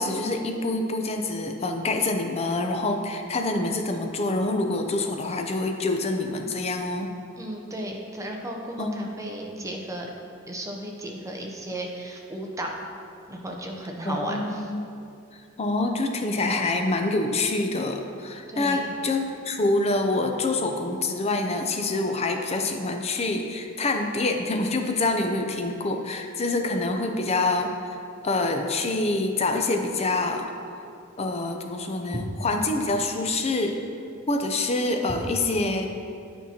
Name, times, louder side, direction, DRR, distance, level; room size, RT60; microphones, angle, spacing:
voice 1, 0.0-7.1 8.8-9.0 14.0-14.8 15.6-28.0 28.2-30.5 31.2-33.8 34.3-35.9, left 2 dB, 30° left, 4 dB, 0.5 m, -26 dB
voice 2, 7.4-10.1 10.5-12.7 13.3-14.7 18.5-18.9, right 1 dB, 15° right, 1 dB, 0.6 m, -34 dB
8.6 x 5.4 x 2.8 m, 2.5 s
head